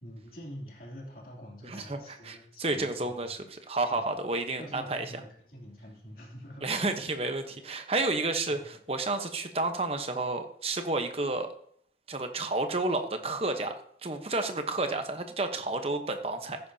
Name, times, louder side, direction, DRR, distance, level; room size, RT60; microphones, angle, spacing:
voice 1, 0.0-3.5 3.9-4.0 4.6-7.0 8.5-8.7, equal, 55° left, -1 dB, 3.0 m, -46 dB
voice 2, 1.6-5.1 6.6-11.5 12.1-13.7 14.0-16.6, right 2 dB, 35° right, 6 dB, 1.0 m, -31 dB
14.0 x 10.5 x 2.8 m, 0.64 s
head